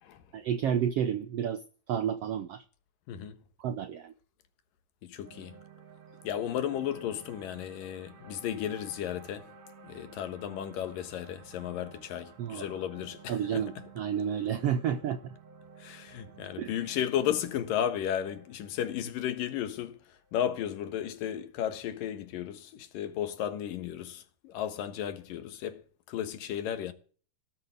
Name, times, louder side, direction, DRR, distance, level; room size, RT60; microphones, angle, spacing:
voice 1, 0.3-1.6 1.9-2.6 3.6-4.1 12.4-12.7 13.3-15.3 16.6-16.8, right 8 dB, 80° right, 1.4 m, -31 dB
voice 2, 3.1-3.4 5.0-5.6 6.2-9.5 9.8-13.8 15.8-20.0 20.3-26.9, left 10 dB, 90° left, 3.1 m, -34 dB
sound 1, 5.2-21.5, right 5 dB, 55° right, 3.2 m, -53 dB
18.5 x 6.7 x 8.1 m
omnidirectional pair, 3.8 m